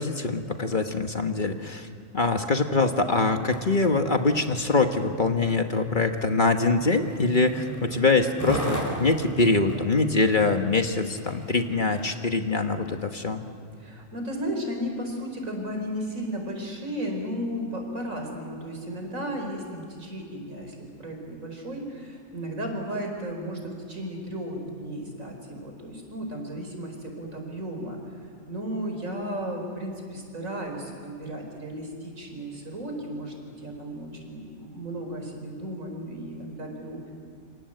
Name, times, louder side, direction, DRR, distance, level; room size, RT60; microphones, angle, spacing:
voice 1, 0.0-1.9 2.1-13.4, left 3 dB, 40° left, 5 dB, 1.4 m, -24 dB
Skateboard, 3.5-12.2 12.9-13.0, right 1 dB, 10° left, 4.7 m, -37 dB
voice 2, 13.8-28.0 28.5-37.0, equal, 80° right, 3 dB, 5.2 m, -34 dB
27.5 x 26.0 x 7.8 m, 2.1 s
omnidirectional pair, 1.4 m